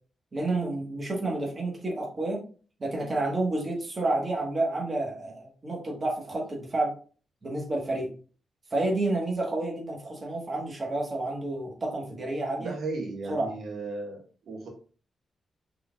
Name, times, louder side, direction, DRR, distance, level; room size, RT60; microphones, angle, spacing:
voice 1, 0.3-2.4 2.8-6.9 7.4-8.1 8.7-12.7 13.3-13.5, right 2 dB, 30° right, -2 dB, 1.3 m, -30 dB
voice 2, 12.6-14.2 14.5-14.7, right 3 dB, 85° right, 0 dB, 1.6 m, -35 dB
5.6 x 4.0 x 2.3 m, 0.40 s
wide cardioid pair, 145°, 0 cm